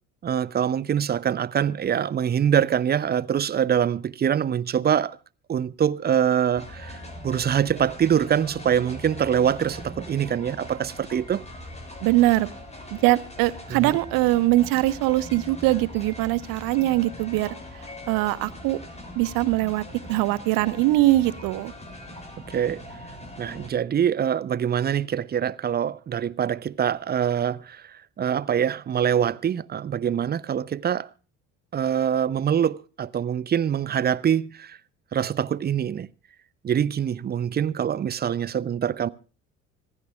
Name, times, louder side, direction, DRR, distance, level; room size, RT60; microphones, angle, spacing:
voice 1, 0.2-5.2 5.5-7.0 7.2-11.4 13.7-14.0 22.5-22.8 23.4-31.1 31.7-34.8 35.1-36.1 36.6-39.1, right 9 dB, 25° right, 0.7 m, -24 dB
sound 1, 6.5-23.7, left 1 dB, 15° left, 7.1 m, -41 dB
voice 2, 12.0-12.5 13.0-17.5 18.1-18.8 19.1-21.7, right 17 dB, 55° right, 1.3 m, -22 dB
25.5 x 14.5 x 2.4 m
figure-of-eight pair, 60°, 41 cm